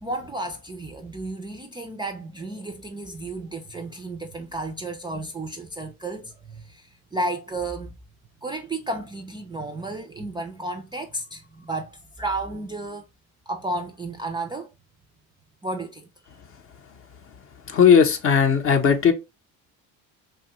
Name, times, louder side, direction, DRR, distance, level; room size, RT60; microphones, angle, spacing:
voice 1, 0.0-7.9 8.4-13.0 13.5-14.7 15.6-16.1, right 2 dB, 15° right, 0.3 m, -32 dB
voice 2, 17.7-19.1, left 7 dB, 35° left, 0.6 m, -17 dB
3.0 x 2.3 x 2.8 m
supercardioid pair, 90°, 36 cm